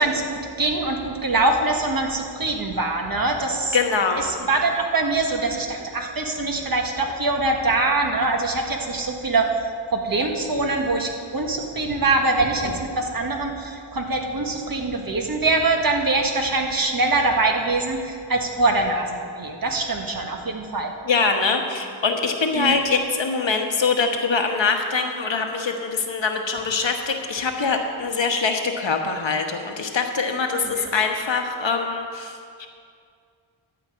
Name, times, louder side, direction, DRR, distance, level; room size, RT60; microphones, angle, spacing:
voice 1, 0.0-3.8 4.2-20.9 22.6-22.8 30.6-30.9, right 2 dB, 45° right, 2 dB, 1.5 m, -23 dB
voice 2, 3.7-4.3 21.0-32.7, left 4 dB, 70° left, 4 dB, 1.3 m, -23 dB
11.5 x 5.2 x 8.5 m, 2.3 s
wide cardioid pair, 70°, 47 cm